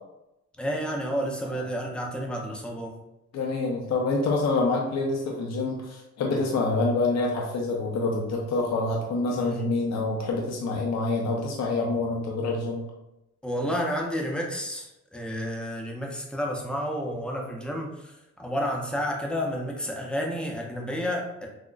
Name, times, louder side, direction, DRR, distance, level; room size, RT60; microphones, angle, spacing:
voice 1, 0.6-3.0 9.3-9.7 13.4-21.5, equal, 5° left, -1 dB, 0.5 m, -31 dB
voice 2, 3.3-12.8, left 3 dB, 60° left, -1 dB, 0.6 m, -26 dB
6.2 x 2.1 x 2.3 m, 0.90 s
cardioid pair, 155°, 30 cm